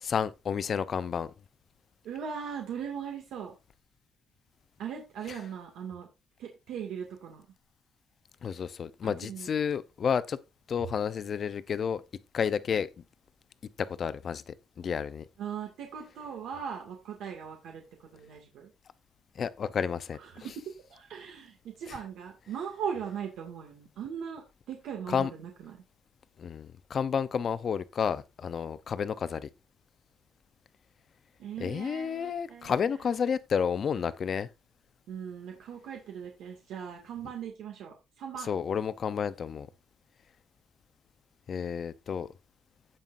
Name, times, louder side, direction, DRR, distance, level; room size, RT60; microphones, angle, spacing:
voice 1, 0.0-1.3 8.4-10.4 10.7-12.0 12.3-12.9 13.8-15.2 19.4-20.2 21.9-22.0 25.1-25.3 26.4-29.5 31.6-34.5 38.5-39.7 41.5-42.3, left 7 dB, 40° left, 0.7 m, -31 dB
voice 2, 2.0-3.5 4.8-6.1 6.4-7.4 9.0-9.5 15.4-18.7 20.1-20.5 20.9-25.8 31.4-32.9 35.1-38.5, right 7 dB, 80° right, 2.2 m, -39 dB
16.5 x 5.7 x 2.6 m
cardioid pair, 160°, 0 cm